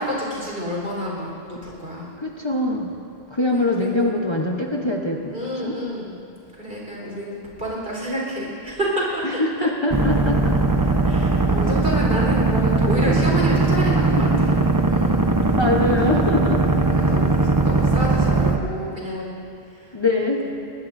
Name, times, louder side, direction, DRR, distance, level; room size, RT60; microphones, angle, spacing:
voice 1, 0.0-2.1 3.5-4.1 5.3-6.2 6.6-9.7 11.0-15.2 16.6-19.3 19.7-20.5, equal, 60° right, -4 dB, 4.4 m, -29 dB
voice 2, 2.2-2.9 3.3-5.4 5.6-5.8 9.2-10.6 12.8-13.1 14.2-14.3 15.5-16.6 19.9-20.5, left 2 dB, 25° left, -1 dB, 1.0 m, -23 dB
sound 1, 9.9-18.6, right 3 dB, 20° right, 0.8 m, -19 dB
22.0 x 19.5 x 2.7 m, 2.5 s
omnidirectional pair, 1.1 m